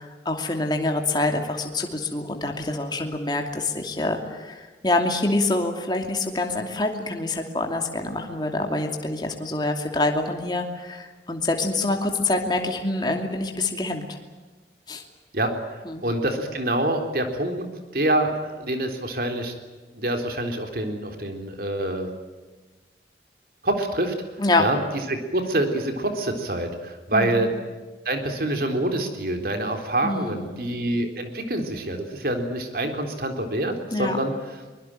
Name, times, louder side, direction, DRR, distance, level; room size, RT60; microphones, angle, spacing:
voice 1, 0.0-14.2 14.9-15.0 15.8-16.0 24.4-24.6 27.1-27.5 30.0-30.6 33.9-34.2, left 2 dB, 25° left, 3 dB, 2.7 m, -26 dB
voice 2, 15.3-17.7 17.9-19.5 20.0-22.1 23.6-24.1 24.6-24.8 25.1-27.5 28.1-34.6, right 1 dB, 55° right, 5 dB, 3.7 m, -26 dB
24.0 x 22.0 x 9.1 m, 1.3 s
head